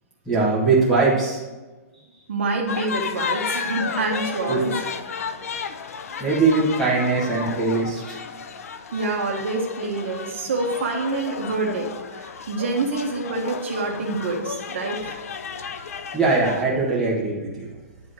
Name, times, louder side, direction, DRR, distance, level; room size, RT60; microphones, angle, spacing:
voice 1, 0.2-1.4 4.5-4.6 6.2-8.2 15.8-15.9 16.1-17.7, right 3 dB, 5° left, -5 dB, 1.6 m, -21 dB
voice 2, 2.3-4.8 5.1-5.2 8.9-15.2, right 3 dB, 50° right, 0 dB, 1.5 m, -27 dB
sound 1, 2.7-16.6, left 6 dB, 65° left, 0.7 m, -33 dB
10.5 x 3.6 x 6.4 m, 1.2 s
hypercardioid pair, 175°, 8 cm